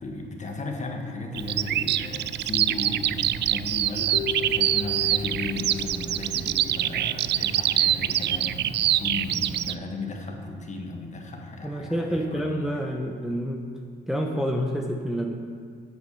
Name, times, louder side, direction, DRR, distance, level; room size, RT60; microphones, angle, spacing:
voice 1, 0.0-12.8, left 2 dB, 35° left, 2 dB, 1.6 m, -35 dB
Bird vocalization bird call bird song, 1.3-9.7, right 12 dB, 60° right, 0.4 m, -25 dB
sound 1, 4.1-7.9, left 6 dB, 75° left, 0.7 m, -37 dB
voice 2, 11.6-13.7 14.1-15.3, equal, ahead, 1 dB, 0.9 m, -28 dB
8.4 x 7.9 x 6.7 m, 2.1 s
cardioid pair, 90°, 20 cm